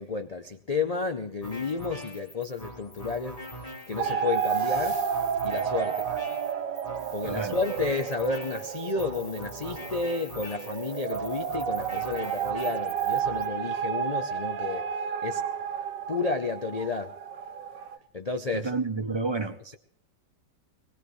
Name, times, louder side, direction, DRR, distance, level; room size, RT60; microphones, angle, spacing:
voice 1, 0.0-5.1 5.4-6.1 7.1-15.4 16.1-17.1 18.1-18.7, left 4 dB, 70° left, 0.3 m, -31 dB
sound 1, 1.4-13.5, equal, 20° left, 3.4 m, -42 dB
sound 2, 4.0-18.0, right 8 dB, 80° right, 1.5 m, -31 dB
voice 2, 7.2-7.6 18.5-19.8, right 4 dB, 45° right, 0.3 m, -30 dB
22.0 x 19.0 x 3.2 m
omnidirectional pair, 1.9 m